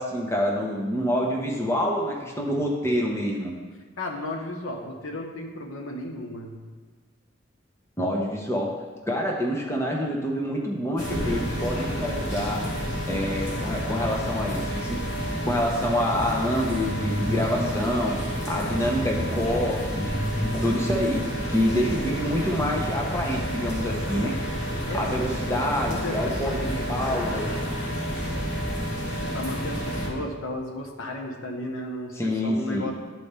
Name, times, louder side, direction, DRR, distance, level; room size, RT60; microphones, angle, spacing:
voice 1, 0.0-3.5 8.0-8.7 9.0-12.7 13.1-15.0 15.5-18.2 18.5-20.1 20.5-21.2 21.5-24.3 24.9-27.6 32.2-32.9, equal, 15° left, -1 dB, 0.8 m, -27 dB
voice 2, 4.0-6.6 24.8-25.2 25.5-26.8 29.3-32.9, left 1 dB, 85° left, 2 dB, 1.0 m, -34 dB
sound 1, 11.0-30.1, equal, 60° left, 2.0 m, -29 dB
12.0 x 4.2 x 3.4 m, 1.3 s
head